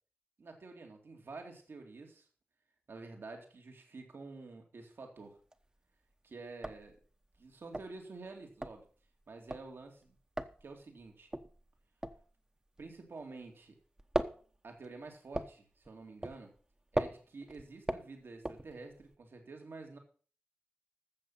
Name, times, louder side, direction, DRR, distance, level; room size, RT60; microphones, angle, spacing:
voice 1, 0.4-2.3 2.9-5.4 6.2-7.0 7.4-8.8 9.3-10.1 10.6-11.3 12.8-13.8 14.6-16.5 16.9-20.0, right 3 dB, 70° right, 3 dB, 2.4 m, -49 dB
sound 1, 5.2-5.8 6.1-6.2 6.5-13.5 13.8-19.1, right 1 dB, 20° right, 1.0 m, -39 dB
13.5 x 7.2 x 5.7 m, 0.41 s
wide cardioid pair, 75°, 4 cm